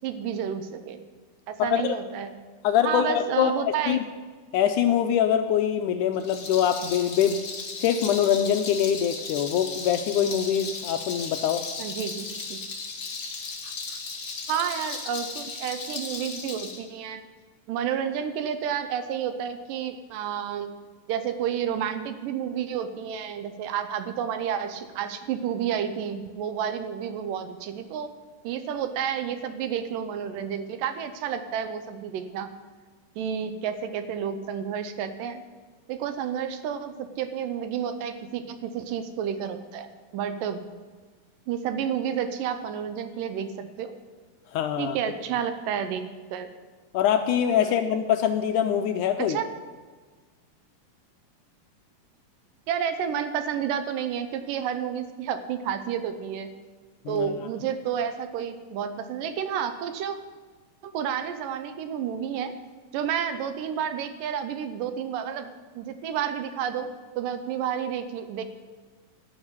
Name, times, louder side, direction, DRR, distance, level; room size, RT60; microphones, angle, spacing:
voice 1, 0.0-1.0 1.5-2.3 2.8-4.0 11.8-12.6 13.6-14.0 14.5-17.2 17.7-20.7 21.1-28.1 28.4-32.5 33.2-35.4 35.9-40.6 41.5-43.9 44.8-46.5 47.6-47.9 49.2-49.5 52.7-56.5 57.1-60.2 60.8-62.5 62.9-65.5 65.8-66.9 67.2-68.4, right 8 dB, 80° right, 10 dB, 2.4 m, -30 dB
voice 2, 1.6-2.0 2.6-4.0 4.5-7.5 7.8-11.6 44.5-45.0 46.9-49.4 57.1-57.3, left 9 dB, 80° left, 7 dB, 2.0 m, -24 dB
Rattle, 6.1-16.8, left 4 dB, 45° left, 2.1 m, -36 dB
13.0 x 6.5 x 9.7 m, 1.5 s
omnidirectional pair, 3.8 m